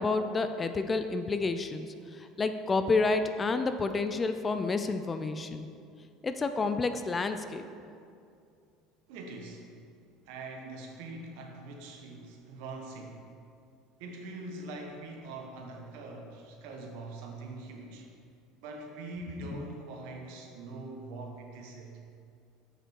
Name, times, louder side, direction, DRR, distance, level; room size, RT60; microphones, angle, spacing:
voice 1, 0.0-5.7 6.2-7.6, left 3 dB, 20° left, 9 dB, 0.4 m, -29 dB
voice 2, 9.1-9.7 10.3-13.3 14.0-18.1 18.6-22.0, right 2 dB, 75° right, 2 dB, 1.3 m, -43 dB
7.8 x 6.3 x 4.5 m, 2.4 s
supercardioid pair, 120°, 0 cm